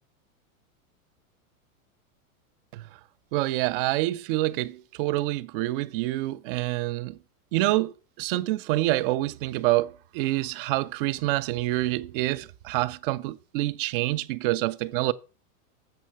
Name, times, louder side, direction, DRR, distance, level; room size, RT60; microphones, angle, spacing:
voice 1, 3.3-7.2 7.5-15.1, right 17 dB, 40° right, 0.5 m, -27 dB
7.7 x 5.3 x 5.6 m
supercardioid pair, 140°, 42 cm